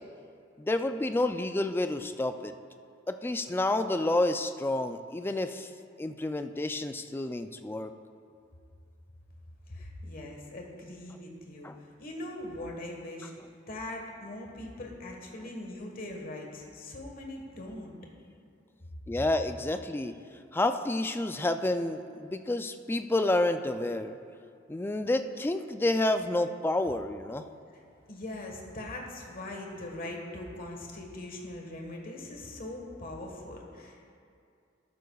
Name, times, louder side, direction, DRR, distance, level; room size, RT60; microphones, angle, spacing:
voice 1, 0.6-2.5 3.1-5.7 6.0-7.9 11.6-11.8 19.1-20.2 20.5-24.2 24.7-27.5, left 2 dB, 10° left, 8 dB, 0.3 m, -29 dB
voice 2, 9.7-13.3 13.7-17.9 27.7-27.8 28.1-34.0, left 1 dB, 50° left, 1 dB, 1.4 m, -41 dB
13.0 x 11.0 x 2.3 m, 2.4 s
head